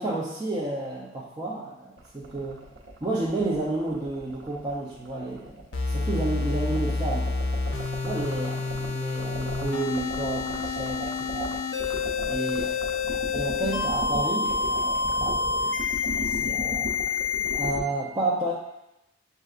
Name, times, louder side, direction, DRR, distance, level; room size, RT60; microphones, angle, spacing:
voice 1, 0.0-2.7 3.0-5.6 5.9-7.3 8.0-11.6 12.3-12.7 13.3-15.7 16.2-16.9 17.5-18.5, right 2 dB, 20° right, -6 dB, 0.5 m, -31 dB
sound 1, 2.0-17.8, right 1 dB, 90° right, 0.7 m, -37 dB
sound 2, 5.7-17.7, left 4 dB, 75° left, 0.6 m, -28 dB
7.5 x 2.6 x 2.4 m, 0.89 s
head